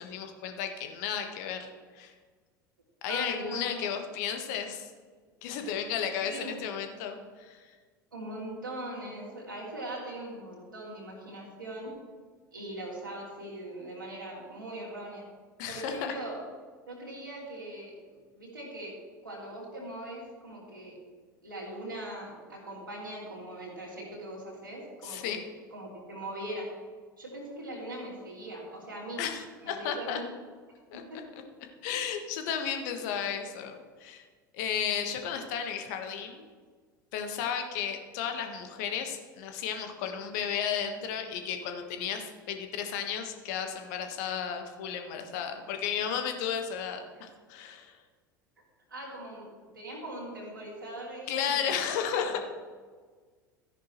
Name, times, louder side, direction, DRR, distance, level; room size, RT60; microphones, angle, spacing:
voice 1, 0.0-1.7 1.9-2.1 3.0-4.9 5.4-7.6 15.6-16.1 25.0-25.4 29.2-30.2 30.9-31.0 31.8-34.2 34.5-36.4 37.1-48.0 51.3-52.4, left 8 dB, 55° left, 5 dB, 1.4 m, -33 dB
voice 2, 3.1-4.0 5.6-5.8 6.2-6.6 8.1-11.9 12.5-15.3 15.7-16.4 16.9-19.0 19.2-21.0 21.4-25.3 25.7-26.7 27.2-29.2 29.6-30.3 30.9-31.2 33.0-33.1 48.6-51.7 52.2-52.4, right 1 dB, 85° right, -4 dB, 2.9 m, -41 dB
13.5 x 10.0 x 3.1 m, 1.5 s
figure-of-eight pair, 75°, 11 cm